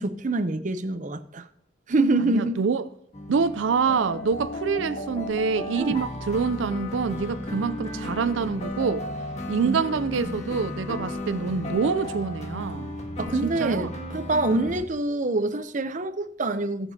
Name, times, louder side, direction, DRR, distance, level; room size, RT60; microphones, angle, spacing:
voice 1, 0.0-1.4 1.9-2.6 5.8-6.0 9.6-9.8 10.2-10.4 13.2-16.9, right 2 dB, 40° right, 0.7 m, -26 dB
voice 2, 2.3-2.8 3.3-9.1 9.5-12.9 13.4-13.9, right 5 dB, 85° right, 0.4 m, -26 dB
sound 1, 3.1-14.8, left 1 dB, 40° left, 1.5 m, -34 dB
17.5 x 6.9 x 2.8 m
head